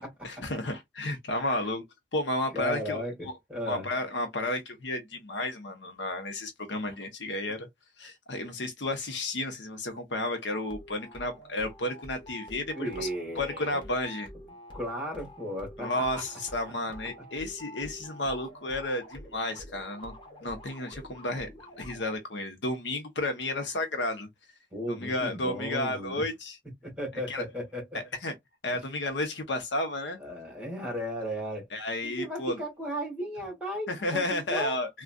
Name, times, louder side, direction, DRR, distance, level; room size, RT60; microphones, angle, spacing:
voice 1, 0.2-1.8 2.1-3.3 3.6-7.7 8.0-13.1 13.4-14.3 15.8-20.1 20.4-21.5 21.8-24.3 24.9-26.6 27.3-27.4 27.9-28.3 28.6-30.2 31.7-32.6 33.9-35.0, left 1 dB, 65° left, 0.8 m, -32 dB
voice 2, 2.5-3.9 12.7-13.8 14.7-16.2 24.7-26.2 26.8-28.0 30.2-31.7 32.0-34.8, equal, 5° right, 1.8 m, -35 dB
sound 1, 10.5-22.2, equal, 25° left, 1.0 m, -47 dB
3.7 x 2.3 x 2.3 m
head